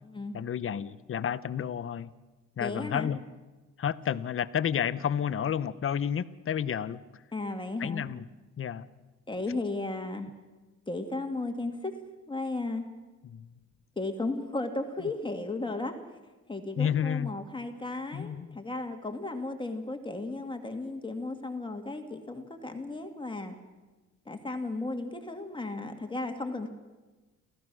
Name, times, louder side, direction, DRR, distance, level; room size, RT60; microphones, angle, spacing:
voice 1, 0.3-2.1 2.6-3.2 3.8-7.2 7.8-8.2 8.6-8.9 13.2-13.5 16.8-17.3 18.1-18.6, left 8 dB, 45° left, 15 dB, 0.9 m, -31 dB
voice 2, 2.6-3.1 7.3-8.0 9.3-10.3 10.9-11.9 12.3-12.9 14.0-16.0 16.5-23.5 24.3-26.7, left 2 dB, 15° left, 4 dB, 2.3 m, -35 dB
29.5 x 14.5 x 6.3 m, 1.2 s
cardioid pair, 90°, 30 cm